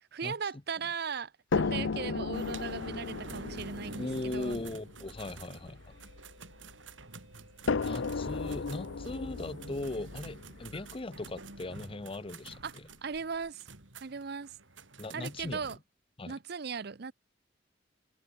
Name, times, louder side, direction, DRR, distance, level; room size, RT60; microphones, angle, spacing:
voice 1, 0.1-4.6 12.6-12.7 13.0-13.6 14.0-14.6 15.1-15.8 16.3-17.1, right 6 dB, 60° right, 0.7 m, -38 dB
sound 1, 1.5-6.7 7.7-11.6 12.6-12.7 13.1-13.2, left 4 dB, 90° left, 0.7 m, -35 dB
sound 2, 2.3-15.8, right 3 dB, 90° right, 3.6 m, -49 dB
voice 2, 4.0-5.9 7.8-12.9 15.0-15.7 16.2-16.4, left 2 dB, 30° left, 0.7 m, -39 dB
head